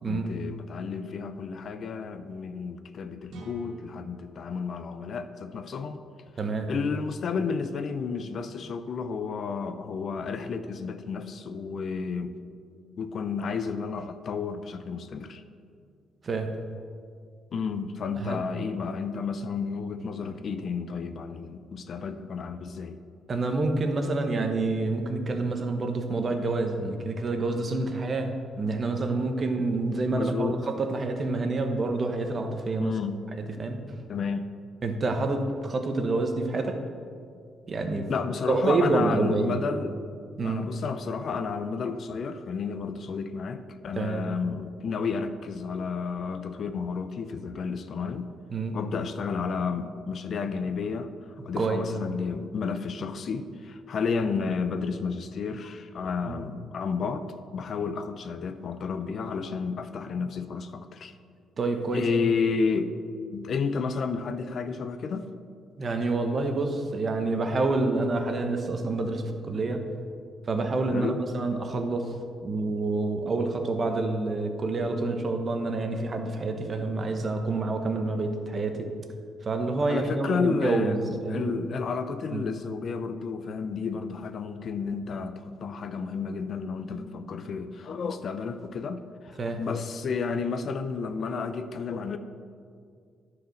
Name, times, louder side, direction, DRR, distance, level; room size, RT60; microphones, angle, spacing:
voice 1, 0.1-6.0 6.7-12.3 13.0-15.4 17.5-23.0 30.1-30.6 32.8-33.2 34.1-34.5 38.1-39.9 40.4-48.3 48.7-51.1 51.4-57.3 57.5-61.1 61.9-63.0 63.3-65.3 70.9-71.2 79.9-92.2, left 5 dB, 55° left, 10 dB, 0.6 m, -31 dB
sound 1, 3.3-7.1, right 2 dB, 75° right, 1.4 m, -50 dB
voice 2, 6.4-6.7 16.2-16.5 18.1-18.4 23.3-32.9 33.6-33.8 34.8-36.8 37.7-38.1 38.5-39.6 40.4-40.7 43.9-44.2 48.5-48.8 51.6-51.8 56.2-56.4 61.6-62.1 65.8-69.8 70.5-72.1 72.4-78.9 79.4-81.6 82.3-82.4 89.4-89.6, right 3 dB, 40° right, 5 dB, 1.1 m, -28 dB
10.5 x 4.9 x 6.5 m, 2.2 s
cardioid pair, 90°, 0 cm